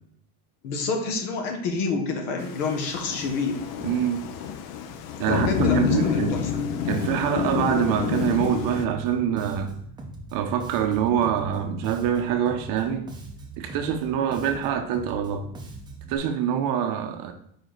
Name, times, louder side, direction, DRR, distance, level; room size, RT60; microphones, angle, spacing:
voice 1, 0.6-3.6 5.3-6.6, left 4 dB, 60° left, 1.4 m, -28 dB
Thunder / Rain, 2.4-8.9, left 8 dB, 45° left, 0.6 m, -28 dB
voice 2, 3.8-4.2 5.2-6.4 6.9-9.7 10.3-13.1 13.6-15.5 16.1-17.3, right 9 dB, 45° right, 0.8 m, -25 dB
Bass guitar, 6.3-16.2, right 2 dB, 10° right, 0.8 m, -41 dB
5.0 x 4.8 x 3.9 m
supercardioid pair, 135°, 48 cm